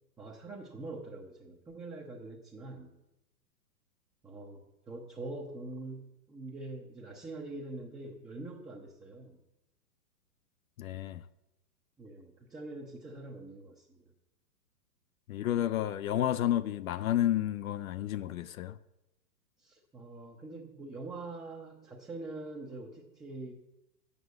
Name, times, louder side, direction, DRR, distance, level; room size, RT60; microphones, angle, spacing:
voice 1, 0.2-2.9 4.2-9.4 12.0-14.1 19.6-23.5, right 2 dB, 5° right, 0.7 m, -44 dB
voice 2, 10.8-11.2 15.3-18.8, left 12 dB, 55° left, 0.6 m, -31 dB
8.4 x 6.4 x 7.9 m
hypercardioid pair, 125°, 49 cm